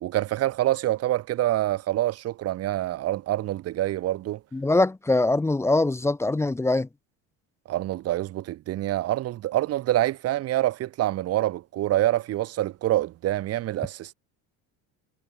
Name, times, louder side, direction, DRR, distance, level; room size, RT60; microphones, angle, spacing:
voice 1, 0.0-4.4 7.7-14.1, right 14 dB, 40° right, 2.0 m, -26 dB
voice 2, 4.5-6.9, left 2 dB, 5° left, 1.3 m, -23 dB
cardioid pair, 175°, 36 cm